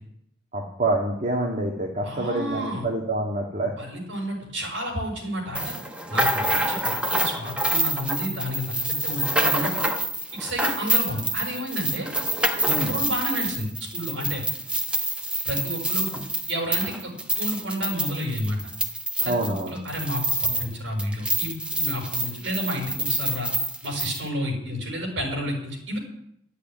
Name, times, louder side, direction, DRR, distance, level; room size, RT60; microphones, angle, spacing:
voice 1, 0.5-3.7 12.7-12.9 19.3-19.7, right 2 dB, 40° right, 0 dB, 1.9 m, -26 dB
voice 2, 2.0-2.8 3.8-5.7 6.1-9.9 10.3-12.1 12.8-14.4 15.4-16.1 16.5-18.6 19.2-23.5 23.8-26.0, equal, 70° right, 2 dB, 6.1 m, -31 dB
sound 1, 5.5-20.7 21.0-24.2, right 1 dB, 5° right, 1.1 m, -27 dB
12.5 x 8.4 x 9.4 m, 0.75 s
head